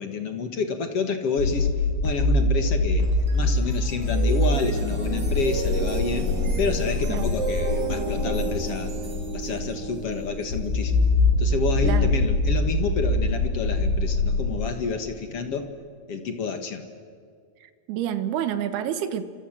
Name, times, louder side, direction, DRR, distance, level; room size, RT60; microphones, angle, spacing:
voice 1, 0.0-1.7 2.0-3.1 3.3-6.3 6.6-8.9 9.3-11.1 11.4-15.7 16.1-16.9, left 5 dB, 50° left, 7 dB, 1.9 m, -29 dB
sound 1, 1.4-14.6, left 2 dB, 80° left, 8.0 m, -24 dB
sound 2, 3.0-12.3, right 3 dB, 25° right, 3.4 m, -33 dB
voice 2, 17.6-19.2, right 10 dB, 70° right, 11 dB, 3.1 m, -28 dB
29.0 x 27.0 x 7.5 m, 2.1 s
omnidirectional pair, 4.9 m